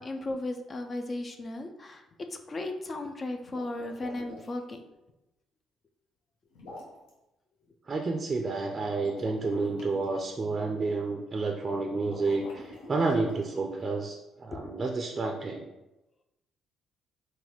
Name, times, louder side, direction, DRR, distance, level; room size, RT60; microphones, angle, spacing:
voice 1, 0.0-2.0 2.5-4.8 14.5-14.7, left 2 dB, 35° left, 5 dB, 0.4 m, -35 dB
sound 1, 3.4-4.6 6.5-7.1 8.9-10.0 12.0-13.7, left 2 dB, 90° left, 0.8 m, -46 dB
voice 2, 7.9-15.7, right 3 dB, 35° right, 2 dB, 0.4 m, -30 dB
3.9 x 2.2 x 2.9 m, 0.98 s
supercardioid pair, 70°, 0 cm